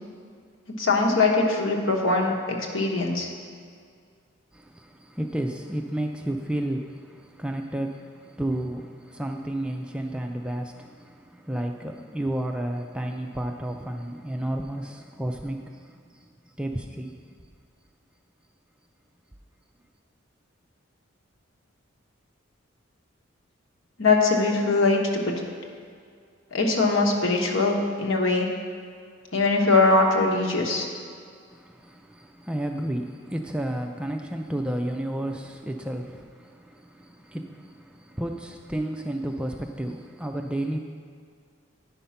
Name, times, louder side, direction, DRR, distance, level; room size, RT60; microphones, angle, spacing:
voice 1, 0.8-3.3 24.0-25.3 26.5-28.5 29.3-30.9, left 3 dB, 75° left, 1.2 m, -22 dB
voice 2, 4.5-16.3 16.6-17.5 31.5-40.8, right 1 dB, 5° right, 0.3 m, -32 dB
9.9 x 5.4 x 5.7 m
head